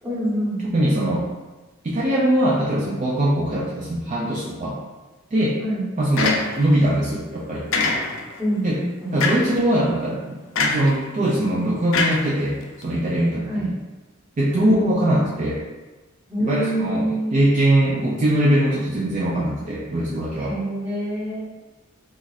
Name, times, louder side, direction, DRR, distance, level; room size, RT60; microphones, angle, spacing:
voice 1, 0.0-0.7 5.6-5.8 8.4-9.2 13.5-13.7 14.5-14.7 16.3-17.3 20.4-21.4, right 1 dB, 10° right, -10 dB, 1.0 m, -26 dB
voice 2, 0.6-1.3 1.8-4.8 5.3-5.6 6.0-7.7 8.6-8.8 9.1-12.5 12.8-13.7 14.4-15.6 16.4-17.0 17.3-20.5, right 1 dB, 35° right, -6 dB, 0.4 m, -21 dB
sound 1, 6.2-6.8 7.7-8.4 9.2-9.6 10.6-11.0 11.9-12.8, left 3 dB, 70° left, 0.4 m, -23 dB
2.4 x 2.3 x 3.9 m, 1.2 s
head